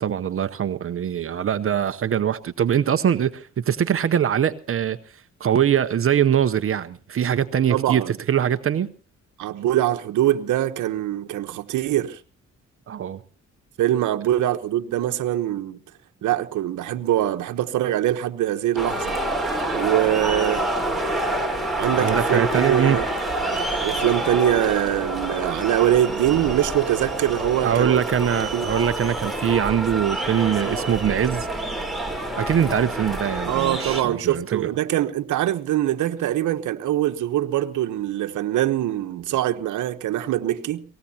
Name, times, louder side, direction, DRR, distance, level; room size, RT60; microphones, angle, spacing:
voice 1, 0.0-5.0 5.4-8.9 12.9-13.2 22.0-23.0 27.6-31.5 32.4-34.7, right 9 dB, 45° right, 0.8 m, -22 dB
voice 2, 7.7-8.1 9.4-12.2 13.8-15.8 16.2-19.2 19.7-20.7 21.8-23.1 23.8-28.0 28.5-28.7 33.5-40.8, right 13 dB, 75° right, 1.1 m, -23 dB
sound 1, 18.8-34.0, right 1 dB, ahead, 4.0 m, -27 dB
23.5 x 18.0 x 2.9 m
cardioid pair, 90°, 30 cm